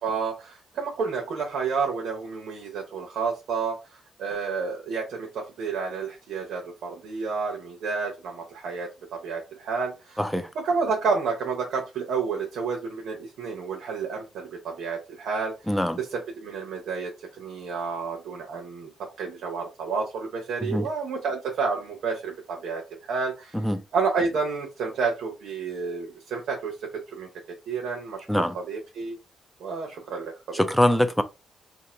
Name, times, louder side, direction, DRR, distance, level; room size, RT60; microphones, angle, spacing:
voice 1, 0.0-18.9 19.2-23.6 23.9-27.3 27.7-29.2 29.6-30.6, right 5 dB, 80° right, 0.8 m, -30 dB
voice 2, 10.2-10.5 15.7-16.0 20.6-20.8 23.5-23.8 28.3-28.5 30.6-31.2, equal, ahead, 0.4 m, -23 dB
2.7 x 2.4 x 4.2 m
cardioid pair, 130°, 0 cm